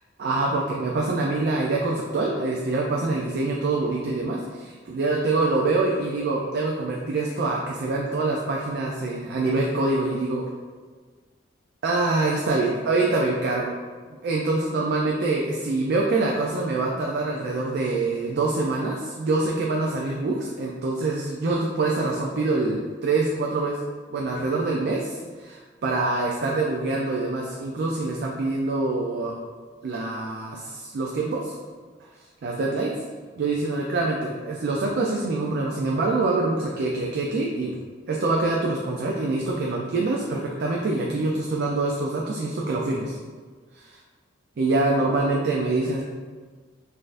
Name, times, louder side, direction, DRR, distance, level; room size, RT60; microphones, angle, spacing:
voice 1, 0.2-10.5 11.8-13.7 14.2-23.8 24.1-29.4 29.8-31.5 32.4-32.9 33.4-37.7 38.1-43.2 43.7-44.0 44.6-46.0, right 2 dB, 60° right, -1 dB, 0.4 m, -25 dB
3.9 x 2.6 x 2.5 m, 1.5 s
head